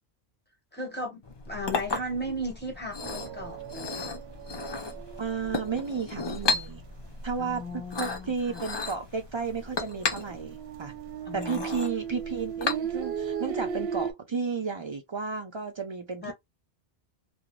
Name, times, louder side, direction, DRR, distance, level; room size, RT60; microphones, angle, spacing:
voice 1, 0.7-4.1 7.4-8.6 11.2-11.6 16.2-16.3, equal, 10° left, 0.9 m, -36 dB
Chink clink, 1.2-13.3, left 4 dB, 40° left, 0.4 m, -35 dB
sound 1, 3.0-6.9 7.3-7.9 8.2-8.3 8.7-14.1, right 7 dB, 75° right, 0.8 m, -37 dB
voice 2, 5.2-6.8 7.2-7.6 8.0-10.9 11.3-16.3, right 5 dB, 50° right, 0.3 m, -33 dB
2.4 x 2.0 x 2.9 m
omnidirectional pair, 1.0 m